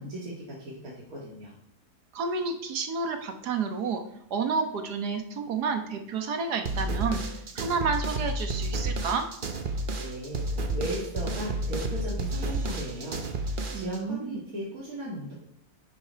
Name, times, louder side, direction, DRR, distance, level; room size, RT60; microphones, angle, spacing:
voice 1, 0.0-1.5 10.0-10.4 10.7-13.2 13.5-15.3, right 1 dB, 65° right, -6 dB, 2.7 m, -37 dB
voice 2, 2.1-4.0 4.3-7.2 7.5-9.2 13.7-14.4, right 5 dB, 80° right, 6 dB, 1.7 m, -30 dB
sound 1, 6.6-14.0, right 1 dB, 40° right, 0.9 m, -31 dB
11.0 x 6.1 x 4.6 m, 0.74 s
omnidirectional pair, 1.7 m